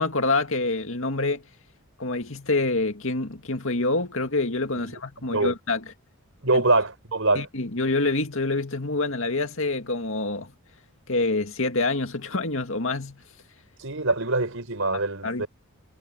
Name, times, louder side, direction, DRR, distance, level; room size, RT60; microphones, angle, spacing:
voice 1, 0.0-1.4 2.0-5.8 6.5-6.6 7.4-10.5 11.1-13.2 15.2-15.5, left 2 dB, 60° left, 2.3 m, -26 dB
voice 2, 6.4-7.5 13.8-15.5, right 2 dB, 65° right, 5.0 m, -24 dB
head